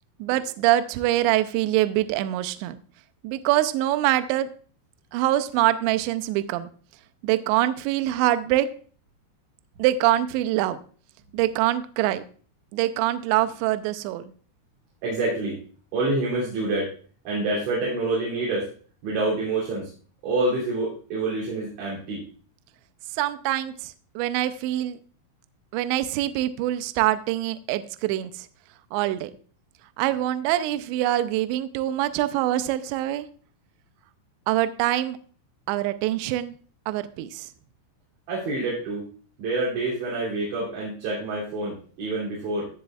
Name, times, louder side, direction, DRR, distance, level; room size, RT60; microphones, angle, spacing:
voice 1, 0.2-2.8 3.2-4.5 5.1-6.7 7.2-8.7 9.8-10.8 11.3-12.2 12.7-14.3 23.1-25.0 25.7-28.5 28.9-29.3 30.0-33.3 34.5-35.2 35.7-36.5 36.9-37.5, right 14 dB, 85° right, 11 dB, 2.6 m, -24 dB
voice 2, 15.0-15.6 15.9-16.9 17.2-18.7 19.0-19.9 20.2-22.2 38.3-39.0 39.4-42.7, right 2 dB, 65° right, -6 dB, 5.0 m, -27 dB
16.5 x 7.6 x 2.4 m, 0.42 s
omnidirectional pair, 5.7 m